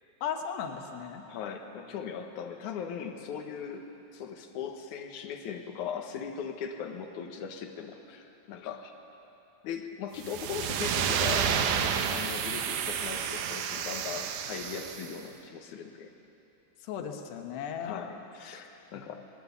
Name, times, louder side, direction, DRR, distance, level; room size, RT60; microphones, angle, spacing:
voice 1, 0.2-1.2 16.8-18.0, left 7 dB, 80° left, 4 dB, 3.3 m, -36 dB
voice 2, 1.3-8.9 9.6-16.1 17.8-19.3, left 7 dB, 65° left, 4 dB, 2.1 m, -39 dB
sound 1, 10.2-15.1, right 8 dB, 75° right, 1.9 m, -30 dB
20.5 x 19.5 x 8.3 m, 2.9 s
omnidirectional pair, 4.8 m